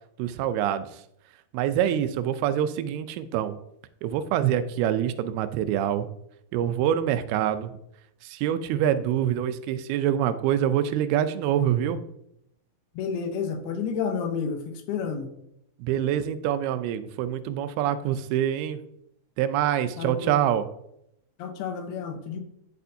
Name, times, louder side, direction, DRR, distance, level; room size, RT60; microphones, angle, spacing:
voice 1, 0.2-0.9 1.5-3.6 4.0-6.1 6.5-7.7 8.2-12.0 15.8-18.8 19.4-20.7, right 10 dB, 85° right, 12 dB, 2.6 m, -25 dB
voice 2, 13.0-15.3 20.0-20.3 21.4-22.4, left 6 dB, 85° left, 6 dB, 2.9 m, -30 dB
11.0 x 6.7 x 2.7 m, 0.78 s
omnidirectional pair, 4.5 m